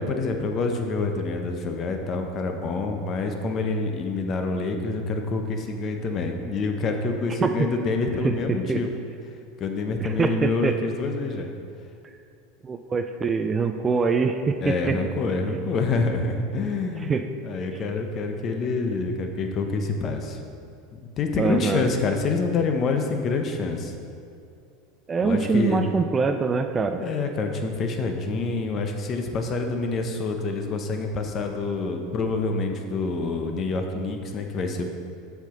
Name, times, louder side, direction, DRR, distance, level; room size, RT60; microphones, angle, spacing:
voice 1, 0.0-8.9 9.6-11.5 14.6-17.2 17.4-20.4 20.9-23.9 25.2-25.8 27.0-34.8, left 3 dB, 35° left, 4 dB, 0.7 m, -27 dB
voice 2, 8.2-8.8 10.0-10.8 12.6-15.0 17.1-17.2 21.4-21.9 25.1-27.0, right 4 dB, 20° right, 7 dB, 0.3 m, -24 dB
7.2 x 5.7 x 3.8 m, 2.4 s
supercardioid pair, 125°, 0 cm